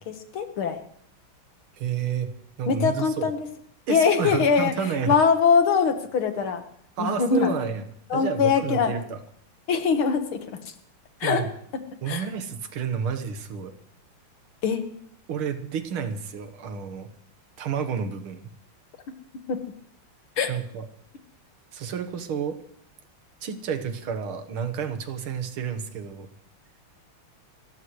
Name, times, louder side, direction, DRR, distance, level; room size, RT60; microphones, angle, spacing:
voice 1, 0.1-0.8 2.7-3.5 3.9-4.7 5.1-6.6 7.0-7.5 8.1-8.9 9.7-10.4 11.2-11.4 12.1-12.3 14.6-14.8 19.5-19.6 20.4-20.5, left 6 dB, 80° left, 7 dB, 2.3 m, -22 dB
voice 2, 1.8-2.3 2.6-3.3 3.9-5.2 7.0-7.9 8.1-9.2 11.2-11.5 12.0-13.7 15.3-17.1 17.6-18.5 20.5-20.9 21.7-22.6 23.4-26.3, right 7 dB, 85° right, 8 dB, 2.1 m, -30 dB
29.5 x 14.5 x 3.2 m, 0.64 s
omnidirectional pair, 2.3 m